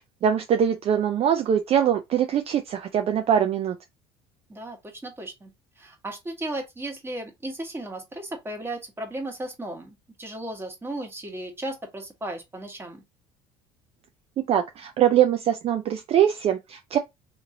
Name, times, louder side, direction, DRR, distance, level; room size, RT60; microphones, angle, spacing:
voice 1, 0.2-3.7 14.5-17.0, right 9 dB, 45° right, 0.5 m, -22 dB
voice 2, 4.5-13.0, right 1 dB, 15° right, 1.4 m, -35 dB
2.9 x 2.6 x 3.7 m
supercardioid pair, 90°, 14 cm